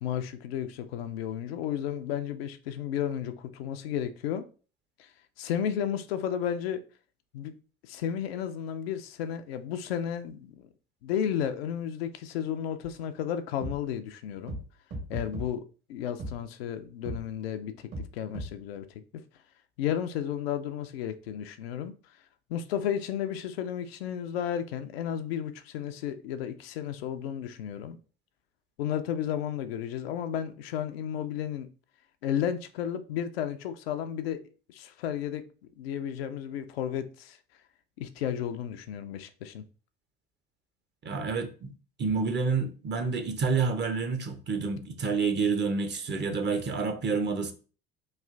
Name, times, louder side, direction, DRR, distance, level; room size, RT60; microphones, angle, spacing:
voice 1, 0.0-4.5 5.0-5.1 5.4-6.8 7.3-7.5 7.8-10.7 11.0-14.5 15.1-15.6 15.9-18.9 19.8-21.9 22.5-28.0 28.8-31.7 32.2-34.4 34.7-35.4 35.8-37.4 38.0-39.6, left 9 dB, 75° left, 0.5 m, -33 dB
sound 1, 12.8-12.9 13.6-13.7 14.5-14.6 14.9-15.5 16.2-16.3 17.0-17.2 17.9-18.1 18.3-18.5, right 1 dB, 50° right, 1.6 m, -35 dB
voice 2, 41.0-41.7 42.0-47.5, right 4 dB, 35° right, 0.8 m, -28 dB
3.2 x 2.4 x 3.7 m
hypercardioid pair, 65°, 30 cm